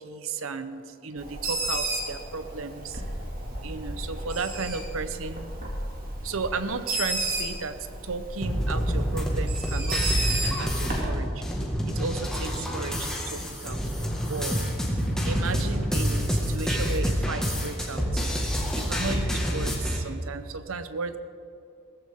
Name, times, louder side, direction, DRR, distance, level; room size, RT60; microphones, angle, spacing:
voice 1, 0.0-3.0 3.6-5.5 6.2-11.4 11.9-13.8 14.3-14.6 15.2-18.2 18.7-21.2, right 4 dB, 85° right, 11 dB, 0.8 m, -34 dB
Bird, 1.2-11.0, right 2 dB, 45° right, 2.3 m, -33 dB
sound 1, 8.4-20.0, equal, 5° left, 1.6 m, -27 dB
17.0 x 15.0 x 3.6 m, 2.5 s
head